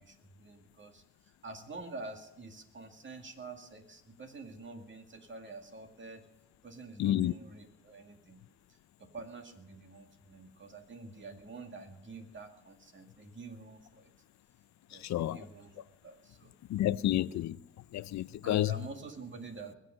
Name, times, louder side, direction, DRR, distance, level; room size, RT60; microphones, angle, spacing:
voice 1, 0.0-6.2 6.6-8.4 9.0-14.1 14.9-16.5 18.4-19.8, right 3 dB, 40° right, 2.3 m, -47 dB
voice 2, 7.0-7.3 15.1-15.4 16.7-17.6 17.9-18.7, left 13 dB, 65° left, 0.5 m, -29 dB
21.0 x 8.1 x 6.5 m
cardioid pair, 90°, 30 cm